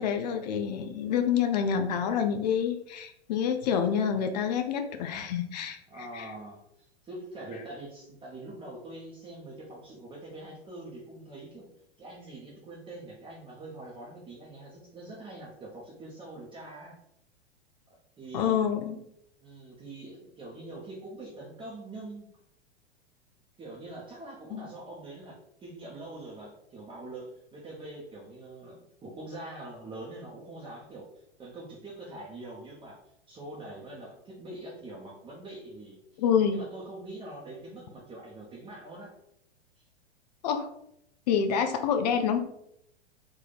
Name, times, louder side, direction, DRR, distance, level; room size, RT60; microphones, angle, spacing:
voice 1, 0.0-6.3 18.3-19.0 24.5-24.7 36.2-36.6 40.4-40.7 41.3-42.4, left 7 dB, 40° left, 7 dB, 0.5 m, -27 dB
voice 2, 5.9-11.7 12.0-17.0 18.2-18.7 19.4-22.3 23.6-33.0 33.3-36.2 36.5-39.1 39.8-39.9, right 2 dB, 15° right, -5 dB, 0.8 m, -44 dB
3.7 x 2.7 x 3.9 m, 0.76 s
figure-of-eight pair, 95°, 32 cm